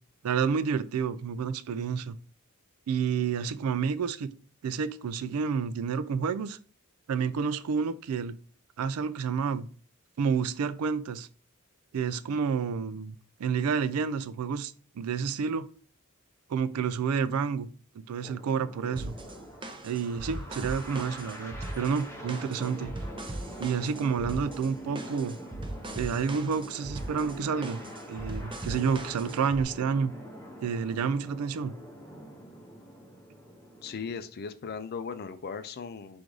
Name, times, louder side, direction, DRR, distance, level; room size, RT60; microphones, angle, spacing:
voice 1, 0.2-2.2 2.9-4.3 4.6-6.6 7.1-8.4 8.8-9.7 10.2-11.3 11.9-13.1 13.4-15.7 16.5-17.7 18.1-19.2 19.8-22.9 23.6-25.4 25.9-27.8 28.1-30.1 30.6-31.7, right 6 dB, 90° right, 0.4 m, -29 dB
sound 1, 18.2-34.2, equal, 10° left, 0.7 m, -45 dB
sound 2, 19.0-29.6, right 1 dB, 20° right, 0.5 m, -40 dB
voice 2, 33.8-36.2, left 5 dB, 45° left, 0.4 m, -38 dB
3.7 x 2.6 x 4.6 m
head